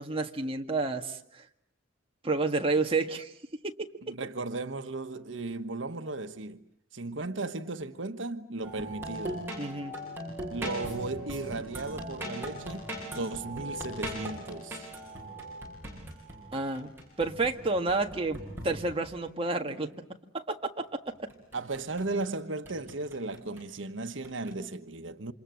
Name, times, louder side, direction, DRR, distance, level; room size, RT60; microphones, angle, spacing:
voice 1, 0.0-1.4 2.2-3.3 3.6-3.7 9.6-10.0 16.5-16.9 17.2-19.9 20.3-20.9 21.2-21.3, right 3 dB, 30° right, 1.7 m, -30 dB
voice 2, 4.0-6.6 6.9-9.4 10.5-14.9 21.5-25.3, right 2 dB, 85° right, 1.3 m, -36 dB
sound 1, 8.6-19.3 21.1-22.3 22.7-23.7 24.2-24.6, right 1 dB, 10° right, 7.9 m, -40 dB
29.0 x 27.0 x 7.7 m
head